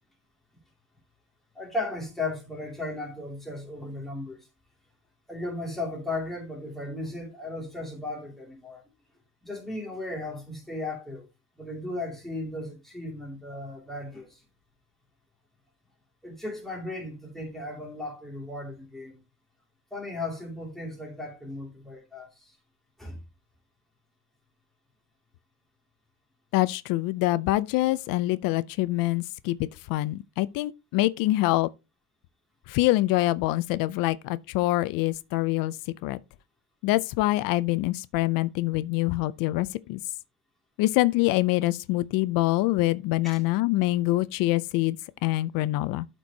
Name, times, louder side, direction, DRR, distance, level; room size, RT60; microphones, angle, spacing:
voice 1, 1.5-4.5 5.3-8.8 9.4-11.3 11.6-14.4 16.2-19.2 19.9-22.6 23.0-23.2 43.2-43.4, left 2 dB, ahead, 2.4 m, -36 dB
voice 2, 26.5-31.7 32.7-35.8 36.0-36.2 36.8-40.0 40.8-46.1, left 18 dB, 90° left, 0.5 m, -25 dB
12.0 x 4.5 x 2.8 m
cardioid pair, 170°, 33 cm